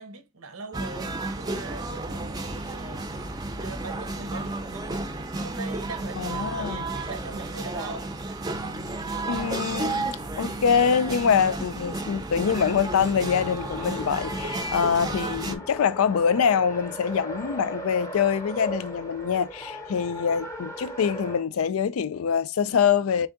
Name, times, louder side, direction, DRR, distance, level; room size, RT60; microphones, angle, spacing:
voice 1, 0.0-3.2 3.6-8.1, right 3 dB, 85° right, 1.0 m, -41 dB
sound 1, 0.7-15.6, right 2 dB, 20° right, 0.5 m, -32 dB
voice 2, 6.2-6.9 9.3-23.3, left 7 dB, 75° left, 0.4 m, -24 dB
Race car auto racing, 12.2-21.4, equal, 15° left, 0.7 m, -38 dB
3.5 x 3.4 x 3.7 m
head